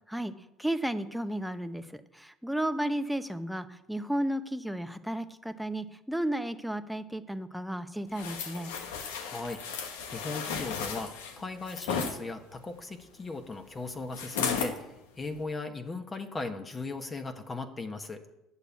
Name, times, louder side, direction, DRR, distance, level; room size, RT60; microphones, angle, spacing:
voice 1, 0.6-8.7, right 1 dB, ahead, 10 dB, 0.8 m, -33 dB
sound 1, 8.1-12.2 14.1-14.8 15.3-15.4, left 6 dB, 85° left, 1.2 m, -34 dB
voice 2, 9.2-18.2, left 3 dB, 25° left, 6 dB, 1.2 m, -38 dB
8.3 x 6.6 x 8.3 m, 0.91 s
hypercardioid pair, 80°, 0 cm